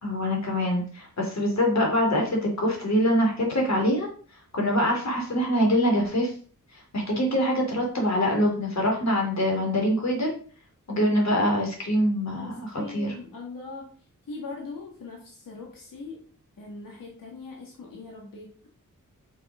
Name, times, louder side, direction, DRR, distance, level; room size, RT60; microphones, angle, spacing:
voice 1, 0.0-4.1 4.5-6.3 6.9-10.3 10.9-13.1, equal, 55° left, 0 dB, 3.4 m, -24 dB
voice 2, 12.4-13.9 14.3-16.3 16.6-18.5, left 3 dB, 90° left, -1 dB, 2.1 m, -40 dB
6.6 x 6.5 x 5.1 m, 0.43 s
wide cardioid pair, 115°, 32 cm